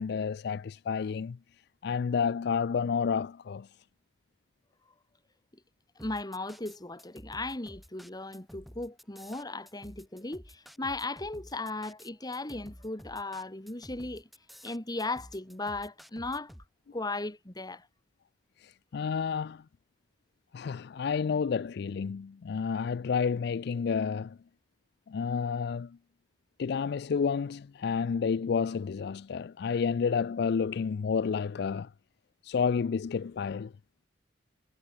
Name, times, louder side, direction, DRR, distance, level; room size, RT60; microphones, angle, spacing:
voice 1, 0.0-1.4 1.8-3.7 18.6-19.6 20.5-24.4 25.1-26.0 26.6-31.9 32.4-33.7, left 6 dB, 60° left, 0.4 m, -30 dB
voice 2, 6.0-14.3 14.6-16.5 16.9-17.9, left 2 dB, 20° left, 1.9 m, -37 dB
sound 1, 6.0-16.7, equal, ahead, 3.0 m, -51 dB
head